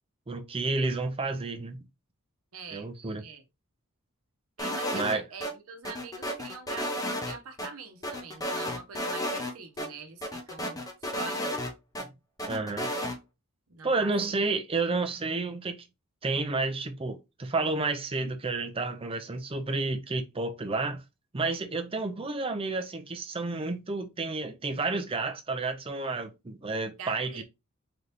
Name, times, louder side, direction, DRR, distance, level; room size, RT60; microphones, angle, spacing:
voice 1, 0.3-1.8 2.7-3.2 4.9-5.2 12.0-12.1 12.5-12.9 13.8-15.8 16.2-21.0 21.3-27.4, right 3 dB, 25° right, 0.6 m, -31 dB
voice 2, 2.5-2.9 3.2-3.4 4.6-11.6 13.7-14.1 27.0-27.4, right 4 dB, 75° right, 0.9 m, -44 dB
sound 1, 4.6-5.5 5.8-7.7 8.0-9.5 9.8-9.9 10.2-12.0 12.4-13.2, equal, 15° left, 0.7 m, -32 dB
3.9 x 2.9 x 3.4 m
head